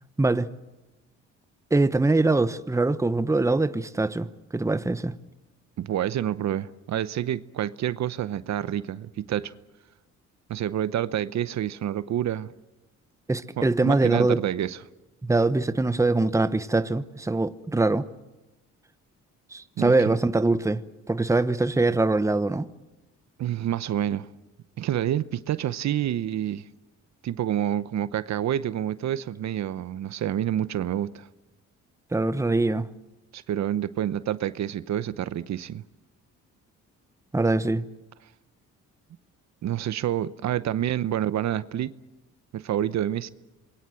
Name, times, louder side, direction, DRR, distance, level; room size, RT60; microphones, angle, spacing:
voice 1, 0.2-0.5 1.7-4.3 4.5-5.1 13.3-14.4 15.2-18.1 19.5-20.8 21.1-22.7 32.1-32.9 37.3-37.9, right 2 dB, 10° right, 1.0 m, -23 dB
voice 2, 5.8-9.5 10.5-12.5 13.6-14.8 19.8-20.2 23.4-24.3 24.8-26.6 27.2-31.3 33.3-35.8 39.6-41.9 42.5-43.3, right 11 dB, 65° right, 0.9 m, -28 dB
27.0 x 22.0 x 7.7 m
cardioid pair, 90°, 30 cm